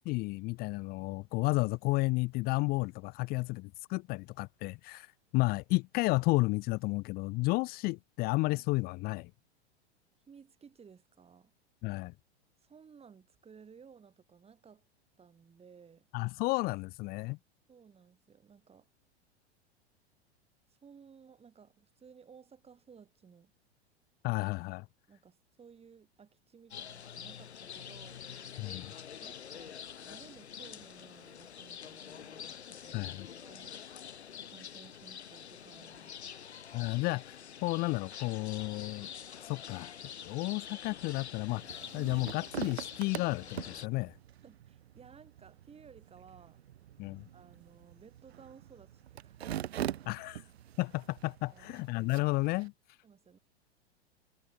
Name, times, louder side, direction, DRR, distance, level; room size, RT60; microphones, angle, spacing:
voice 1, 0.0-9.3 11.8-12.1 16.1-17.4 24.2-24.9 28.6-28.9 32.9-33.3 36.7-39.1 39.4-39.9 40.2-44.2 47.0-47.3 50.1-50.4 50.8-53.0, left 24 dB, 30° left, 0.6 m, -32 dB
voice 2, 10.3-11.5 12.6-14.8 15.2-16.0 17.7-18.9 20.8-23.5 25.1-28.2 29.2-33.8 34.5-36.3 44.4-46.6 47.3-49.6 50.1-50.2 51.5-51.7 53.0-53.4, right 6 dB, 20° right, 6.8 m, -57 dB
sound 1, 26.7-43.9, left 8 dB, 75° left, 0.7 m, -46 dB
sound 2, 41.5-52.7, right 11 dB, 70° right, 0.6 m, -44 dB
figure-of-eight pair, 90°, 33 cm